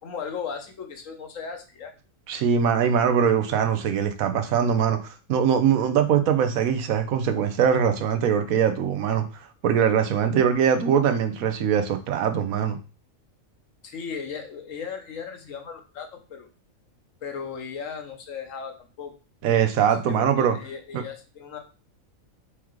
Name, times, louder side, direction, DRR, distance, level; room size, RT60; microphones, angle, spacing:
voice 1, 0.0-1.9 13.8-16.5 17.2-19.1 20.1-21.6, left 6 dB, 70° left, 4 dB, 1.2 m, -36 dB
voice 2, 2.3-9.2 9.6-12.8 19.4-20.6 20.9-21.0, right 8 dB, 90° right, 7 dB, 1.1 m, -22 dB
4.6 x 3.6 x 3.1 m, 0.34 s
omnidirectional pair, 1.4 m